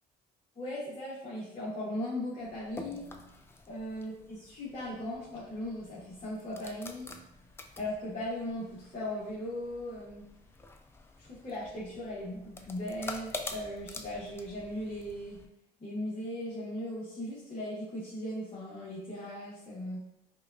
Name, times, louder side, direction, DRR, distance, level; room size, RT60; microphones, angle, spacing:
voice 1, 0.5-3.1 3.7-7.1 7.8-10.2 11.2-15.4 15.8-20.0, left 1 dB, 35° left, -9 dB, 1.2 m, -38 dB
sound 1, 2.4-15.5, left 2 dB, 15° left, 0.3 m, -47 dB
4.8 x 2.4 x 2.5 m, 0.81 s
cardioid pair, 110°, 17 cm